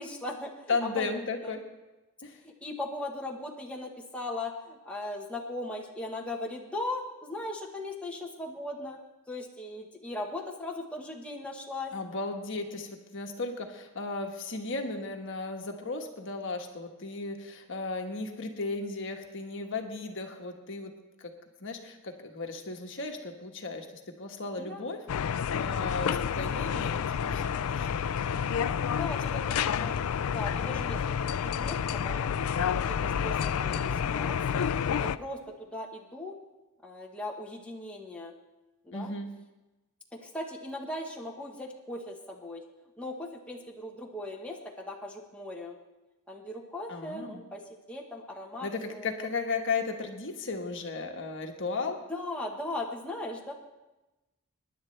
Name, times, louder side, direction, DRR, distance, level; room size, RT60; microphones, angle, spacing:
voice 1, 0.0-1.1 1.4-1.5 2.4-9.0 9.3-11.9 24.6-24.8 28.9-30.0 30.3-31.1 31.4-32.3 32.6-34.7 35.0-35.4 35.7-36.3 36.8-38.3 38.8-39.1 40.1-42.6 43.0-45.8 46.3-47.6 47.9-49.1 52.1-53.5, left 2 dB, 5° left, -2 dB, 1.2 m, -38 dB
voice 2, 0.7-1.6 2.2-2.4 11.9-20.9 21.2-21.3 21.6-23.8 24.2-25.0 25.6-28.2 29.3-29.4 38.9-39.3 46.9-47.4 48.6-52.0, left 3 dB, 55° left, 3 dB, 1.3 m, -35 dB
sound 1, 25.1-35.2, left 7 dB, 75° left, 0.4 m, -29 dB
23.5 x 10.5 x 3.3 m, 1.1 s
head